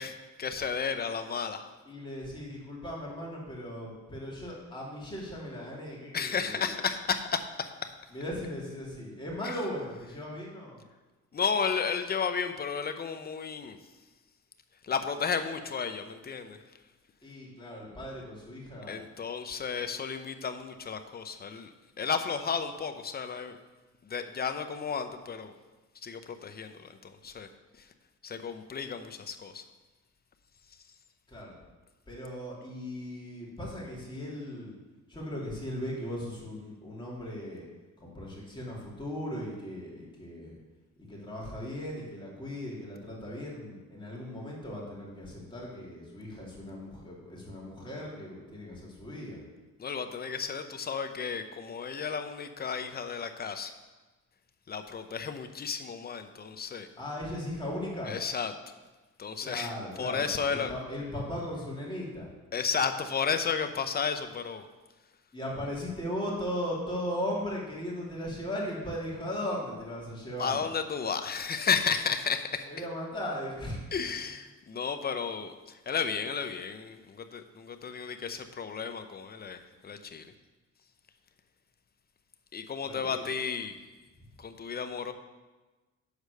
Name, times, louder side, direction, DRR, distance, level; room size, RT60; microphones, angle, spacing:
voice 1, 0.0-1.7 6.1-7.9 9.4-9.6 11.3-13.8 14.8-16.6 18.9-21.7 22.0-23.6 24.0-25.5 26.0-27.5 28.2-29.6 49.8-53.7 54.7-56.9 58.0-58.5 59.2-60.7 62.5-64.7 70.4-72.7 73.9-75.5 75.9-79.6 79.8-80.3 82.5-83.8 84.4-85.1, left 6 dB, 30° left, 8 dB, 0.7 m, -33 dB
voice 2, 1.9-6.6 8.1-10.8 17.2-19.0 31.3-31.5 32.1-34.7 35.1-37.6 38.0-40.5 41.1-49.4 57.0-58.1 59.4-62.3 65.3-70.6 72.7-73.8 82.8-83.3, equal, 15° left, -5 dB, 2.8 m, -37 dB
6.6 x 4.8 x 6.6 m, 1.2 s
cardioid pair, 90°, 30 cm